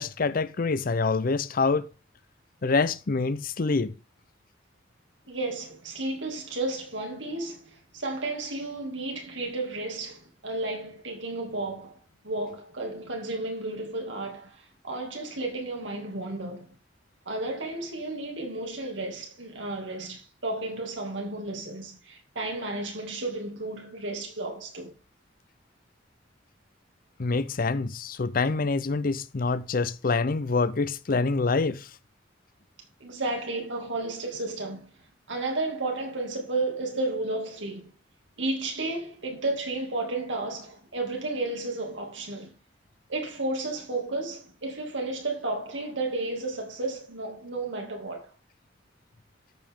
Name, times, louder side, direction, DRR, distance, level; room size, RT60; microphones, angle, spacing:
voice 1, 0.0-1.9 2.6-3.9 27.2-31.9, left 4 dB, 50° left, 0.6 m, -26 dB
voice 2, 5.3-11.9 12.2-16.7 17.3-24.9 33.0-34.9 35.3-37.9 38.4-42.5 43.1-48.3, right 2 dB, 90° right, 2.6 m, -32 dB
13.0 x 5.4 x 3.7 m
head